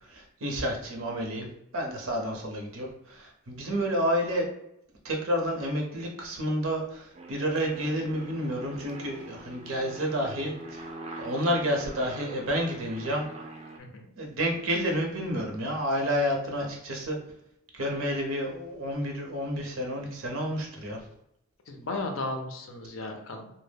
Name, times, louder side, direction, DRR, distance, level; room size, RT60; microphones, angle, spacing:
voice 1, 0.0-4.5 5.0-10.9 11.2-13.3 14.2-17.2 17.7-21.0, equal, 85° right, 1 dB, 0.6 m, -30 dB
Aircraft, 7.1-13.8, right 2 dB, 30° right, 0.3 m, -44 dB
voice 2, 21.7-23.5, left 2 dB, 75° left, 4 dB, 0.5 m, -35 dB
2.1 x 2.0 x 3.3 m, 0.80 s
head